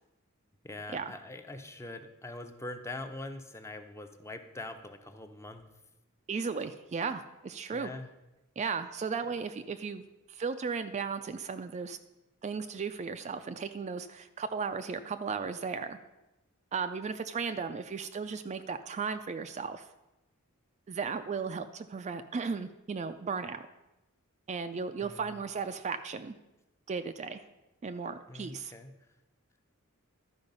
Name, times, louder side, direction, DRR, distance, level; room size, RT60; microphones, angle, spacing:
voice 1, 0.6-5.7 7.7-8.1 25.0-25.3 28.3-28.9, left 2 dB, 15° left, 7 dB, 0.6 m, -43 dB
voice 2, 6.3-7.9 8.6-10.0 10.3-12.0 12.4-16.0 16.7-19.9 20.9-23.6 24.5-26.3 26.9-27.4 27.8-28.7, right 5 dB, 35° right, 8 dB, 0.3 m, -35 dB
12.0 x 4.8 x 5.3 m, 0.99 s
head